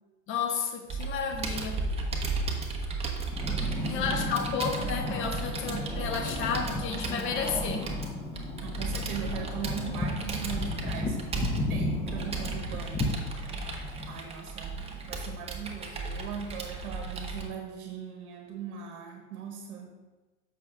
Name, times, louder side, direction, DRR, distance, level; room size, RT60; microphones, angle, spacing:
voice 1, 0.3-1.8 3.8-7.9, left 6 dB, 25° left, 4 dB, 1.0 m, -32 dB
Computer keyboard, 0.9-17.5, right 3 dB, 15° right, 1.0 m, -35 dB
sound 1, 3.3-14.2, left 2 dB, 10° left, 0.6 m, -34 dB
voice 2, 3.6-4.3 5.2-6.0 8.6-13.3 14.1-20.0, right 7 dB, 55° right, 2 dB, 1.3 m, -40 dB
7.6 x 6.2 x 3.6 m, 1.2 s
hypercardioid pair, 115°, 44 cm